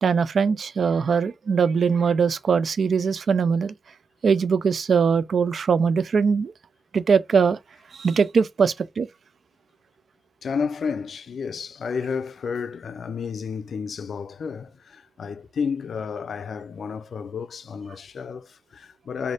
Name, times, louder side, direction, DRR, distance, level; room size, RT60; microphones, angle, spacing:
voice 1, 0.0-3.7 4.2-6.5 6.9-7.6 7.9-9.1, right 6 dB, 75° right, 0.4 m, -21 dB
voice 2, 10.4-19.3, left 6 dB, 85° left, 0.4 m, -31 dB
4.2 x 2.6 x 4.8 m
wide cardioid pair, 115°, 0 cm